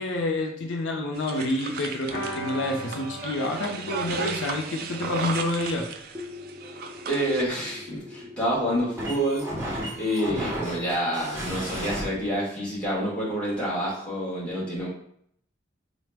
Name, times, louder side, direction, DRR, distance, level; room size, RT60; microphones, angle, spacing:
voice 1, 0.0-5.9, left 2 dB, 80° left, 2 dB, 0.5 m, -28 dB
sound 1, 1.1-7.4, right 5 dB, 50° right, 0.3 m, -35 dB
sound 2, 2.1-7.7 7.9-8.0 8.3-8.4, right 1 dB, 60° left, 0.9 m, -41 dB
sound 3, 6.1-12.1, equal, 15° right, 0.6 m, -35 dB
voice 2, 7.1-9.4 10.0-14.9, equal, 5° left, -8 dB, 1.3 m, -28 dB
3.9 x 2.0 x 3.3 m, 0.68 s
head